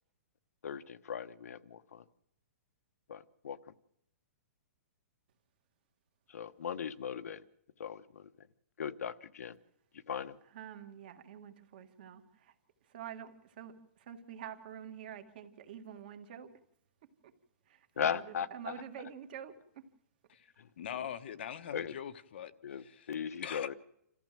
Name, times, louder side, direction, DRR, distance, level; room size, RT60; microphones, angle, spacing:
voice 1, 0.6-2.0 3.1-3.6 6.3-7.4 7.8-8.5 8.8-9.6 10.1-10.4 18.0-18.7 20.6-20.7 21.7-21.9 22.6-23.7, left 7 dB, 75° left, 1.2 m, -38 dB
voice 2, 10.5-12.5 12.8-16.5 17.0-17.3 17.7-19.8, right 9 dB, 35° right, 1.9 m, -48 dB
voice 3, 20.8-23.1 23.4-23.7, left 9 dB, 45° left, 1.0 m, -42 dB
28.0 x 14.5 x 7.6 m
hypercardioid pair, 180°, 8 cm